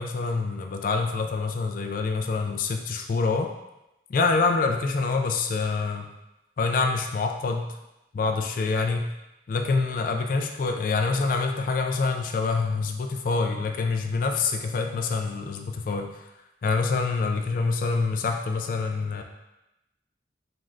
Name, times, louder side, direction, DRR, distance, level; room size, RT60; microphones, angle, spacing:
voice 1, 0.0-3.5 4.1-6.1 6.6-7.7 8.1-9.0 9.5-16.1 16.6-19.2, left 4 dB, 50° left, 4 dB, 0.3 m, -26 dB
3.6 x 2.5 x 3.1 m, 0.93 s
head